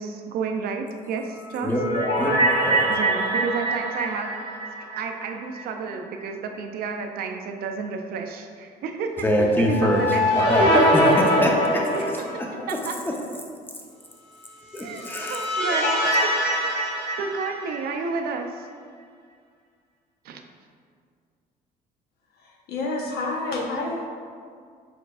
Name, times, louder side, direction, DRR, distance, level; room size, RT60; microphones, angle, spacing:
voice 1, 0.0-1.7 2.9-4.4 5.0-10.5 11.9-12.4 12.7-13.0 14.8-16.9 17.2-18.7 20.2-20.4, right 5 dB, 65° right, 5 dB, 0.5 m, -31 dB
sound 1, 1.3-5.6 5.9-6.0 9.5-12.6 14.7-18.1, equal, 85° left, 1.4 m, -23 dB
voice 2, 9.2-11.8 14.7-15.5, equal, 10° left, -1 dB, 0.6 m, -24 dB
voice 3, 22.4-24.1, left 2 dB, 70° left, -1 dB, 0.9 m, -29 dB
4.8 x 4.5 x 2.3 m, 2.1 s
cardioid pair, 110°, 17 cm